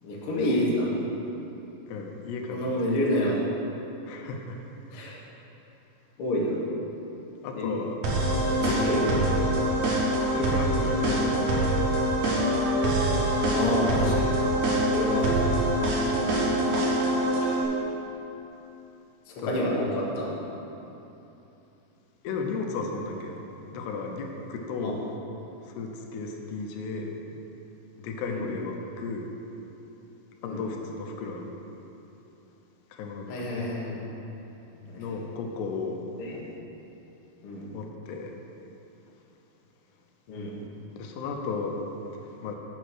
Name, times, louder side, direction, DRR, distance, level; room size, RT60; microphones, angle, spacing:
voice 1, 0.0-0.9 2.5-3.4 4.9-5.2 6.2-6.6 7.5-7.7 8.5-9.6 13.5-14.3 14.9-15.6 17.4-17.5 19.3-20.3 24.8-25.0 28.2-28.5 30.4-30.6 33.3-34.0 34.9-35.1 36.2-36.4 37.4-37.7 40.3-40.6, left 1 dB, 55° left, -4 dB, 1.6 m, -29 dB
voice 2, 1.9-2.7 4.1-4.6 7.4-8.0 8.7-9.0 10.3-12.0 16.1-16.4 19.4-19.6 22.2-23.4 23.7-25.0 25.8-27.1 28.0-29.3 30.4-31.5 32.9-33.3 35.0-36.0 37.7-38.3 40.9-41.8 42.4-42.6, left 4 dB, 85° left, 2 dB, 2.9 m, -34 dB
sound 1, 8.0-17.6, right 1 dB, 60° right, 2.1 m, -24 dB
8.3 x 7.1 x 6.2 m, 3.0 s
omnidirectional pair, 4.7 m